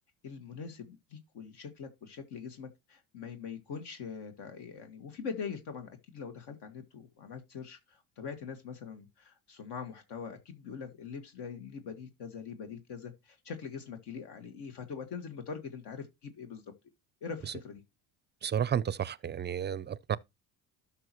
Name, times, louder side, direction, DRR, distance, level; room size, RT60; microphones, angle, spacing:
voice 1, 0.2-16.6 17.2-17.8, left 6 dB, 65° left, 1.8 m, -43 dB
voice 2, 18.4-20.2, right 8 dB, 25° right, 0.5 m, -32 dB
12.5 x 5.8 x 3.0 m
supercardioid pair, 75°, 44 cm